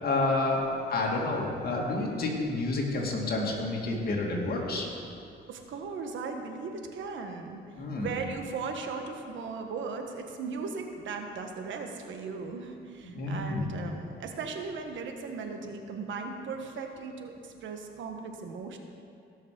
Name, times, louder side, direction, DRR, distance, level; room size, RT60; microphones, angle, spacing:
voice 1, 0.0-4.9 7.8-8.1 13.1-13.7, left 2 dB, 50° left, -2 dB, 2.5 m, -29 dB
voice 2, 5.5-7.6 8.0-18.8, right 4 dB, 70° right, 4 dB, 1.3 m, -37 dB
18.0 x 6.5 x 5.2 m, 2.5 s
cardioid pair, 90°, 20 cm